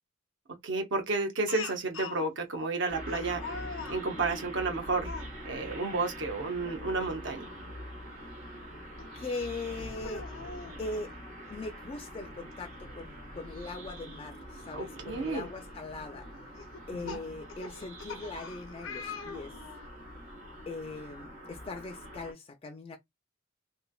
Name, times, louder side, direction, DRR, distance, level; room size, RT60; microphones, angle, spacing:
voice 1, 0.6-3.4 3.9-5.1 5.4-7.4 14.7-15.5 16.9-17.2, right 3 dB, 65° right, 0.8 m, -31 dB
Speech, 1.5-2.2 3.1-4.0 5.0-5.3 6.5-6.8 7.2-7.3 9.0-9.1 9.9-10.8 12.1-12.2 12.5-12.6 14.5-14.6 15.2-15.5 16.6-19.9, left 4 dB, 90° left, 0.6 m, -42 dB
sound 1, 2.9-22.3, equal, 85° right, 1.2 m, -44 dB
voice 2, 9.1-10.2 10.8-11.1 11.5-16.3 16.9-19.5 20.7-23.0, left 3 dB, 30° left, 0.4 m, -40 dB
3.1 x 2.1 x 2.3 m
head